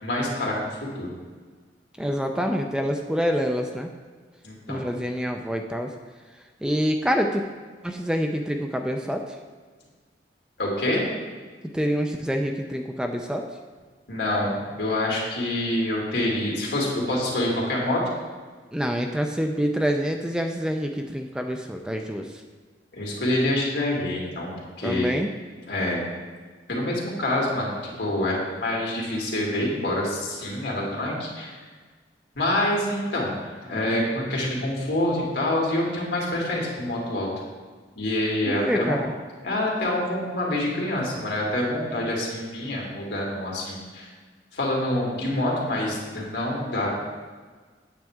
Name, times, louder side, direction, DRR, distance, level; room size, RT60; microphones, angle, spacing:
voice 1, 0.0-0.7 1.0-1.1 4.4-4.8 10.6-11.1 14.1-18.0 22.9-25.1 25.7-26.0 26.7-31.5 32.4-37.3 38.0-39.0 39.4-44.1 44.5-46.9, left 1 dB, 70° left, -3 dB, 2.3 m, -26 dB
voice 2, 2.0-3.9 4.7-5.9 6.6-7.4 7.8-9.3 11.7-13.5 18.7-22.3 24.8-25.3 38.4-39.1, equal, 5° right, 4 dB, 0.4 m, -26 dB
8.9 x 7.4 x 3.6 m, 1.5 s
head